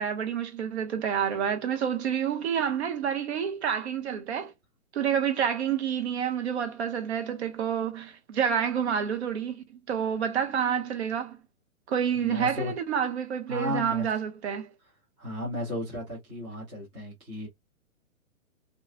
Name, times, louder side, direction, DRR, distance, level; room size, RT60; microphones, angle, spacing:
voice 1, 0.0-4.5 4.9-11.4 11.9-14.7, right 8 dB, 50° right, 0.7 m, -28 dB
voice 2, 12.2-12.7 13.5-14.1 15.2-17.5, left 1 dB, 5° right, 0.4 m, -34 dB
2.8 x 2.3 x 2.3 m
hypercardioid pair, 145°, 42 cm